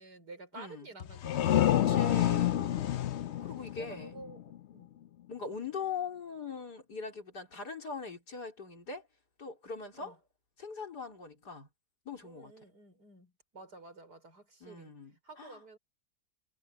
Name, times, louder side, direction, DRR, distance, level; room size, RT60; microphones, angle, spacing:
voice 1, 0.0-2.1 2.4-3.5 3.8-4.9 10.0-10.2 12.2-15.0 15.2-15.8, right 3 dB, 85° right, 5.8 m, -51 dB
voice 2, 0.5-0.9 1.7-2.7 3.4-4.2 5.3-9.1 9.4-10.2 10.6-11.7 12.0-12.5 14.6-15.6, left 5 dB, 85° left, 4.6 m, -41 dB
sound 1, 1.0-4.6, left 12 dB, 60° left, 0.8 m, -29 dB
omnidirectional pair, 1.7 m